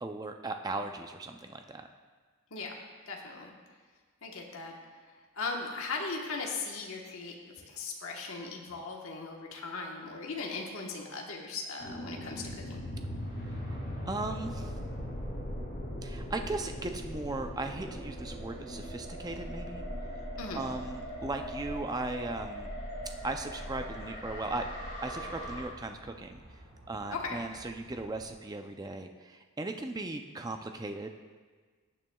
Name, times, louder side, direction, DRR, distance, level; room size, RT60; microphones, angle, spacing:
voice 1, 0.0-1.9 14.1-14.7 16.0-19.8 20.5-22.7 23.2-26.4 26.9-31.1, right 2 dB, 15° right, 6 dB, 0.4 m, -37 dB
voice 2, 3.1-3.5 4.2-4.8 5.3-12.8 20.4-20.6 27.1-27.4, left 4 dB, 70° left, 0 dB, 1.2 m, -38 dB
sound 1, 11.8-25.6, equal, 40° left, 2.5 m, -40 dB
sound 2, 17.2-28.3, equal, 90° right, 1.9 m, -54 dB
15.5 x 8.8 x 2.3 m, 1.4 s
head